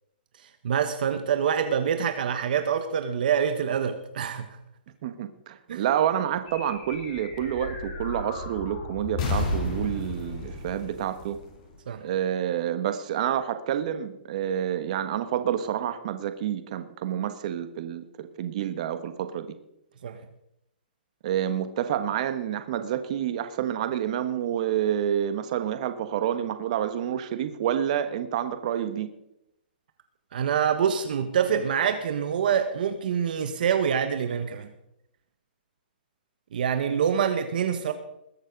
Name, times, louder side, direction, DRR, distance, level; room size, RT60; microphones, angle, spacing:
voice 1, 0.4-4.6 5.7-5.8 11.9-12.0 20.0-20.2 30.3-34.7 36.5-37.9, right 8 dB, 60° right, 8 dB, 1.2 m, -26 dB
voice 2, 5.0-11.4 12.0-19.6 21.2-29.1, right 10 dB, 45° right, 10 dB, 1.4 m, -28 dB
Incoming Artillery, 6.5-12.2, left 2 dB, 35° left, 4.5 m, -33 dB
21.0 x 7.4 x 5.3 m, 0.81 s
hypercardioid pair, 155°, 5 cm